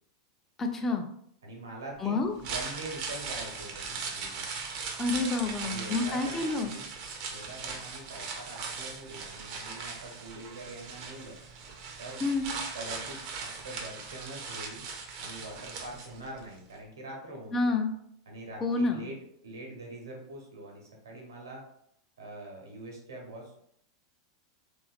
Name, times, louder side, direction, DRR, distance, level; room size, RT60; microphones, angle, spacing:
voice 1, 0.6-1.0 2.0-2.3 5.0-6.7 12.2-12.5 17.5-18.0 18.6-19.1, left 3 dB, 20° left, 3 dB, 0.4 m, -28 dB
voice 2, 1.4-4.5 5.6-6.9 7.3-11.4 12.0-12.2 12.7-14.8 15.2-17.8 18.3-19.2 19.4-21.6 22.2-23.6, right 2 dB, 75° right, 0 dB, 0.9 m, -44 dB
sound 1, 2.2-16.4 16.7-16.8, right 5 dB, 45° right, 0.5 m, -39 dB
2.8 x 2.4 x 2.4 m, 0.70 s
figure-of-eight pair, 90°, 2 cm